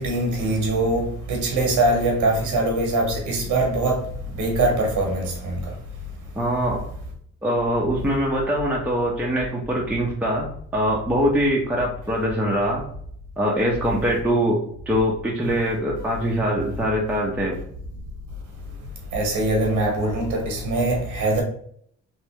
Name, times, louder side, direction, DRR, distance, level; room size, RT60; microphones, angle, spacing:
voice 1, 0.0-4.0 4.4-5.5 19.1-21.4, right 2 dB, 85° right, 1.1 m, -22 dB
voice 2, 6.4-6.8 7.4-12.8 13.4-14.6 14.9-17.6, equal, 5° right, 0.7 m, -23 dB
3.3 x 2.6 x 3.2 m
cardioid pair, 90°, 30 cm